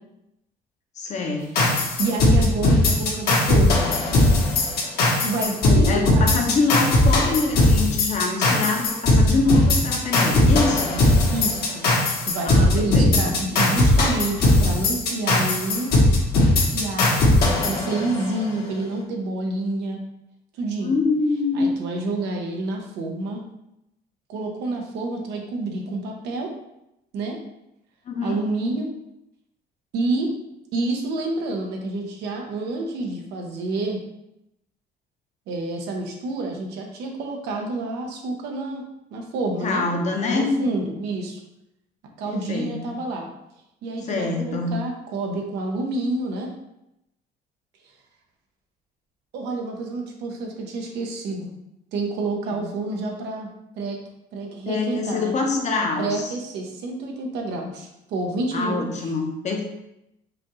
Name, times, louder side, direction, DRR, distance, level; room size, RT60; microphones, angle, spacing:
voice 1, 1.0-1.8 5.6-11.0 12.4-13.2 20.8-21.7 28.1-28.4 39.6-40.7 42.3-42.9 44.0-44.7 52.4-52.6 54.4-56.3 58.5-59.6, left 3 dB, 45° left, 2 dB, 0.8 m, -25 dB
sound 1, 1.6-18.4, left 1 dB, 65° left, 1.2 m, -19 dB
voice 2, 2.0-3.9 5.2-6.5 11.3-11.9 12.3-16.0 16.6-20.0 20.6-21.0 21.5-23.4 24.3-26.5 27.1-27.4 28.2-28.9 29.9-30.3 30.7-34.0 35.5-38.8 39.1-39.8 40.2-41.4 42.2-43.3 43.8-46.5 49.3-51.5 51.9-53.5 53.7-54.0 54.3-55.3 56.0-58.9, right 2 dB, 85° right, 1 dB, 0.8 m, -28 dB
4.9 x 2.5 x 3.0 m, 0.86 s
cardioid pair, 110°, 17 cm